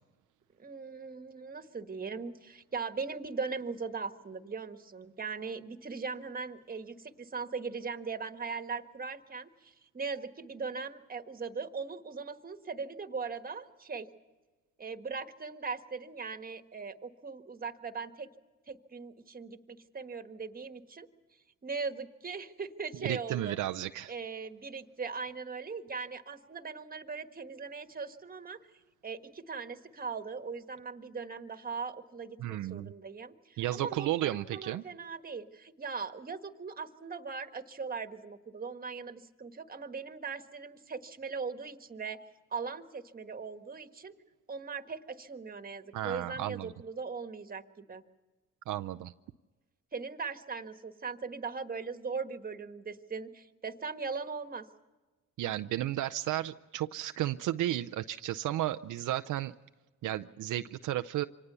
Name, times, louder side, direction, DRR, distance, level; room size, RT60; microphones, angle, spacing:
voice 1, 0.6-14.1 14.8-18.3 18.7-21.1 21.6-23.6 24.1-28.6 29.0-42.2 42.5-44.1 44.5-48.0 49.9-54.7, right 5 dB, 30° right, 8 dB, 1.5 m, -39 dB
voice 2, 22.9-24.1 32.4-32.9 33.6-34.8 45.9-46.7 48.7-49.1 55.4-59.5 60.0-61.3, right 14 dB, 75° right, 9 dB, 0.6 m, -33 dB
25.5 x 18.5 x 6.9 m, 1.2 s
cardioid pair, 95°, 31 cm